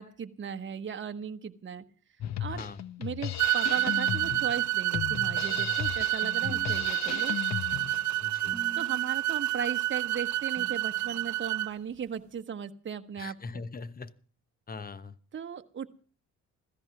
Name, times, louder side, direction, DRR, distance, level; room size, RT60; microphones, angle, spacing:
voice 1, 0.0-1.8 2.4-2.6 3.0-7.4 8.7-13.6 15.3-15.9, right 7 dB, 40° right, 7 dB, 1.2 m, -37 dB
Drum kit, 2.2-8.2, left 10 dB, 65° left, 0.9 m, -36 dB
voice 2, 2.5-2.8 8.2-8.6 13.2-14.1 14.7-15.2, left 4 dB, 30° left, 15 dB, 1.0 m, -41 dB
sound 1, 3.4-11.7, right 15 dB, 75° right, 0.6 m, -29 dB
sound 2, 3.8-5.0 6.4-7.6 8.5-9.3 10.6-11.5, right 3 dB, 15° right, 0.7 m, -48 dB
16.0 x 14.0 x 5.9 m, 0.42 s
cardioid pair, 90°, 30 cm